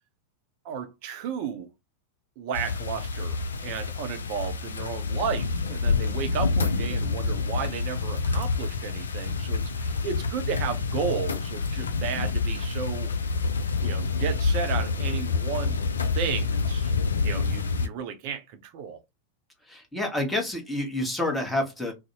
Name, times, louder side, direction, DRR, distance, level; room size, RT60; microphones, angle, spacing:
voice 1, 0.6-1.7 2.4-13.1 13.8-15.9 16.1-16.9 17.2-19.0, right 7 dB, 45° right, 0.5 m, -33 dB
sound 1, 2.5-17.9, left 4 dB, 70° left, 0.3 m, -27 dB
voice 2, 19.7-21.9, left 1 dB, 5° left, 0.9 m, -28 dB
2.5 x 2.0 x 2.8 m
figure-of-eight pair, 90°, 0 cm